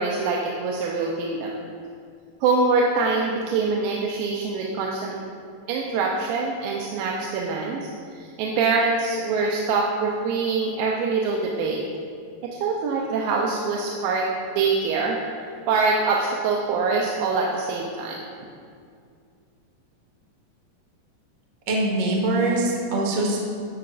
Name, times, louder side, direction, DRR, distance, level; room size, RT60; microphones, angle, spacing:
voice 1, 0.0-1.5 2.4-5.2 5.7-7.9 8.2-11.8 12.4-14.3 14.6-15.2 15.7-18.2, right 4 dB, 90° right, -1 dB, 2.5 m, -24 dB
voice 2, 21.7-23.4, right 2 dB, 55° right, -1 dB, 0.9 m, -23 dB
11.0 x 10.5 x 2.5 m, 2.3 s
omnidirectional pair, 4.0 m